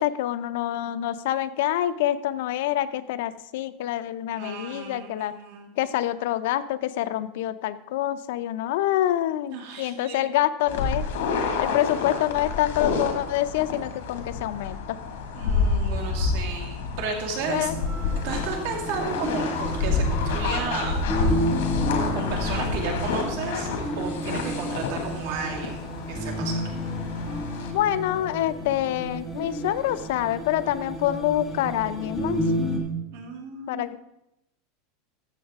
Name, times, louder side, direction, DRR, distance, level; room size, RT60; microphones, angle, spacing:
voice 1, 0.0-5.3 5.8-11.1 11.6-15.0 17.5-17.7 27.7-32.4 33.7-34.0, left 13 dB, 65° left, 13 dB, 0.5 m, -26 dB
voice 2, 4.4-5.7 9.5-10.3 15.3-17.7 18.2-20.9 22.1-23.7 24.0-26.6 33.1-33.9, right 5 dB, 60° right, 0 dB, 2.4 m, -33 dB
sound 1, 10.7-27.7, left 4 dB, 80° left, 2.0 m, -29 dB
sound 2, 17.4-32.8, equal, 5° right, 1.8 m, -31 dB
13.5 x 7.3 x 3.6 m, 0.88 s
supercardioid pair, 170°, 0 cm